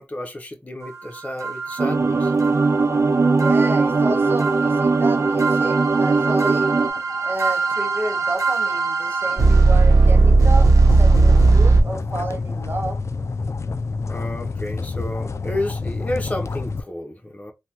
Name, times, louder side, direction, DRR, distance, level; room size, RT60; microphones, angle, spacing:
voice 1, 0.0-2.3 14.0-17.5, left 1 dB, 25° left, 0.9 m, -31 dB
sound 1, 1.4-11.8, right 3 dB, 80° right, 0.8 m, -18 dB
sound 2, 1.8-6.9, right 4 dB, 60° right, 0.3 m, -19 dB
sound 3, 2.4-16.8, left 4 dB, 60° left, 0.3 m, -31 dB
voice 2, 3.4-6.7 7.2-13.0, right 2 dB, 40° right, 0.7 m, -31 dB
3.4 x 2.3 x 2.9 m
wide cardioid pair, 55°, 5 cm